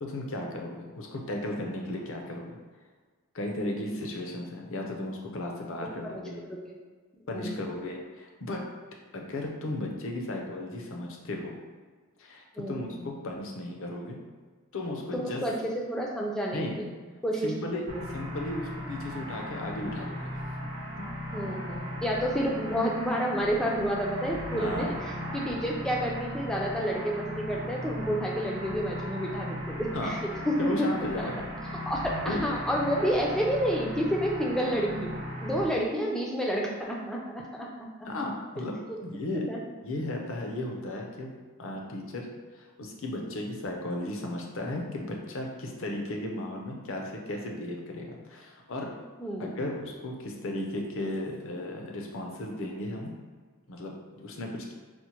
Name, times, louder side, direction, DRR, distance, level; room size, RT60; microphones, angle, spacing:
voice 1, 0.0-2.5 3.3-6.4 7.3-8.6 9.1-11.6 12.2-14.2 14.7-15.4 16.5-16.8 17.4-20.3 24.6-25.0 29.9-30.2 30.6-31.4 32.3-32.4 38.0-39.4 39.8-41.3 41.6-48.9 49.4-53.1 53.7-54.7, left 1 dB, 60° left, 1 dB, 0.6 m, -35 dB
voice 2, 7.3-7.7 12.6-13.1 15.1-16.9 17.2-18.0 21.3-30.2 30.5-30.9 31.2-31.3 31.9-35.1 35.4-37.7 39.5-39.6 49.2-49.6, equal, 5° left, -2 dB, 0.4 m, -30 dB
sound 1, 17.9-35.6, equal, 60° right, 0.8 m, -37 dB
4.3 x 2.1 x 2.9 m, 1.5 s
head